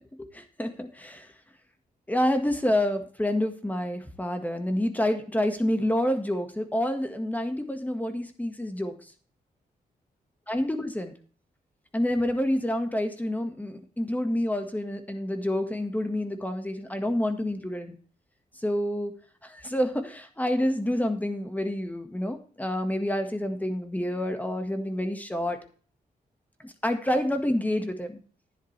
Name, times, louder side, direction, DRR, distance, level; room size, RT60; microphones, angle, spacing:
voice 1, 0.3-1.2 2.1-8.9 10.5-11.1 11.9-18.0 18.6-19.1 19.4-25.6 26.6-28.2, left 1 dB, 10° left, 6 dB, 1.6 m, -28 dB
11.5 x 10.0 x 3.3 m, 0.43 s
cardioid pair, 85°, 16 cm